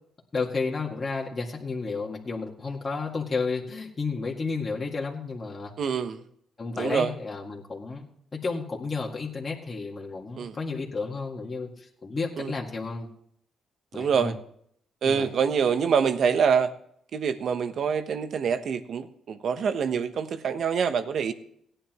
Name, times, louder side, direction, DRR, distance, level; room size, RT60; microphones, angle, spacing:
voice 1, 0.3-5.7 6.6-8.1 8.3-13.1 13.9-14.3 15.0-15.3, left 4 dB, 30° left, -2 dB, 2.0 m, -32 dB
voice 2, 5.8-6.2 6.7-7.1 10.4-10.6 12.4-12.5 13.9-14.3 15.0-16.7 17.1-21.3, right 6 dB, 60° right, 9 dB, 1.0 m, -25 dB
17.5 x 9.9 x 3.1 m, 0.68 s
cardioid pair, 90°, 0 cm